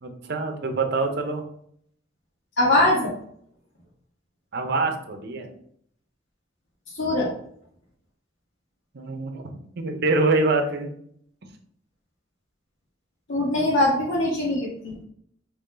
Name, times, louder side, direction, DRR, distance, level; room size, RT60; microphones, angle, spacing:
voice 1, 0.0-1.4 4.5-5.5 8.9-9.4 9.8-10.9, right 3 dB, 60° right, 5 dB, 0.7 m, -25 dB
voice 2, 2.6-3.1 6.9-7.3 13.3-15.0, left 1 dB, 80° left, -4 dB, 1.0 m, -22 dB
4.3 x 3.1 x 3.8 m, 0.66 s
head